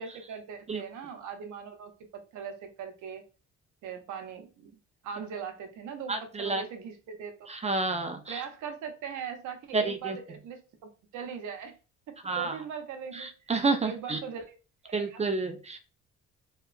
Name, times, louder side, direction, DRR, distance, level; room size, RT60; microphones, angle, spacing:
voice 1, 0.0-3.2 3.8-4.8 5.0-7.5 8.3-11.7 12.1-13.5 13.8-14.6 14.8-15.2, right 6 dB, 75° right, 6 dB, 0.7 m, -40 dB
voice 2, 6.1-6.6 7.5-8.4 9.7-10.2 12.2-12.5 13.1-14.2 14.9-15.8, right 3 dB, 25° right, 7 dB, 0.3 m, -30 dB
2.8 x 2.2 x 2.4 m, 0.34 s
cardioid pair, 90°, 30 cm